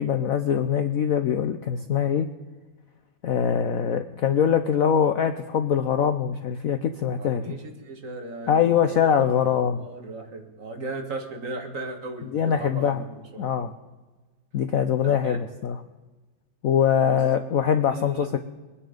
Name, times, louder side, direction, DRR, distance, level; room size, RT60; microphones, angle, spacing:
voice 1, 0.0-2.3 3.2-7.6 8.5-9.8 12.3-13.0 13.4-13.7 14.5-15.8 16.6-18.4, left 8 dB, 65° left, 8 dB, 0.9 m, -23 dB
voice 2, 7.2-9.1 9.5-13.5 15.0-15.4 17.0-17.2 17.9-18.3, right 2 dB, 45° right, 4 dB, 1.8 m, -37 dB
23.5 x 9.9 x 5.1 m, 1.3 s
omnidirectional pair, 2.1 m